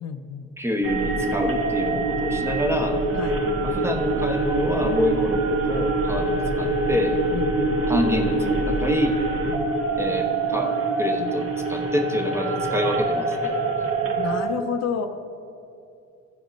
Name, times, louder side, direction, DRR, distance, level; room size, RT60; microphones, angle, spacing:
voice 1, 0.0-0.5 3.1-3.4 7.3-7.8 9.5-9.7 14.2-15.1, left 6 dB, 60° left, 8 dB, 0.7 m, -30 dB
voice 2, 0.6-3.0 3.6-7.2 7.9-9.2 10.0-13.5, left 1 dB, 10° right, 4 dB, 1.0 m, -27 dB
sound 1, 0.8-14.4, right 2 dB, 45° right, 1.5 m, -24 dB
14.5 x 5.1 x 5.2 m, 2.5 s
cardioid pair, 90°, 30 cm